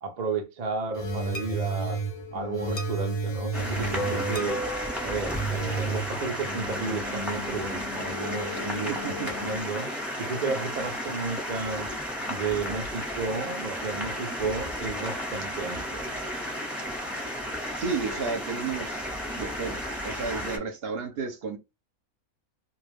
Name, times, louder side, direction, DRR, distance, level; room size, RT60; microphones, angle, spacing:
voice 1, 0.0-2.0 2.3-4.6 5.0-9.9 10.2-11.9 12.3-16.0, right 4 dB, 80° right, 0.3 m, -33 dB
sound 1, 0.9-9.6, right 2 dB, 45° left, 0.8 m, -33 dB
sound 2, 3.5-20.6, equal, ahead, 0.7 m, -33 dB
voice 2, 8.9-9.3 17.8-19.0 19.4-21.6, right 5 dB, 55° right, 0.8 m, -32 dB
2.4 x 2.3 x 3.3 m
omnidirectional pair, 1.5 m